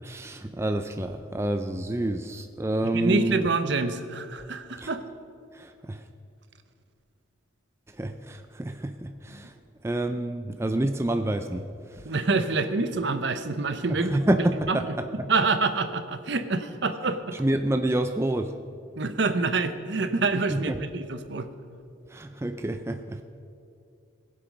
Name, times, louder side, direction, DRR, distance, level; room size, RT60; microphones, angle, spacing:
voice 1, 0.0-3.5 4.8-4.9 5.5-6.0 7.9-12.1 13.9-15.3 17.3-18.6 20.5-20.8 22.1-23.2, right 1 dB, 15° right, 7 dB, 0.4 m, -28 dB
voice 2, 2.9-5.0 12.0-14.2 14.7-14.8 15.3-17.4 19.0-21.5, right 3 dB, 60° right, 10 dB, 0.8 m, -26 dB
21.0 x 7.7 x 5.2 m, 2.6 s
head